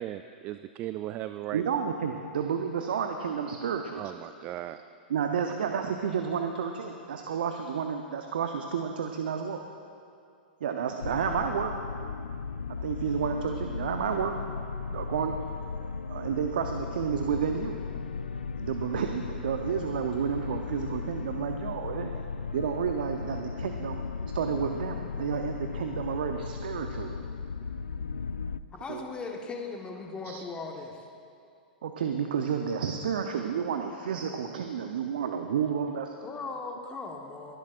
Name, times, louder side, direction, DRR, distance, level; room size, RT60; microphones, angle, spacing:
voice 1, 0.0-1.6 4.0-4.8 30.3-30.4, right 13 dB, 35° right, 12 dB, 0.3 m, -37 dB
voice 2, 1.5-4.1 5.1-9.6 10.6-11.8 12.8-14.4 14.9-15.3 16.1-17.7 18.6-22.1 22.5-24.0 24.3-27.2 28.9-29.0 31.8-36.1, right 7 dB, 70° right, 5 dB, 0.7 m, -31 dB
sound 1, 11.0-28.6, left 5 dB, 85° left, 0.3 m, -36 dB
voice 3, 28.7-31.1 36.2-37.6, left 4 dB, 20° left, 1 dB, 1.3 m, -38 dB
25.0 x 11.5 x 2.5 m, 2.5 s
hypercardioid pair, 105°, 5 cm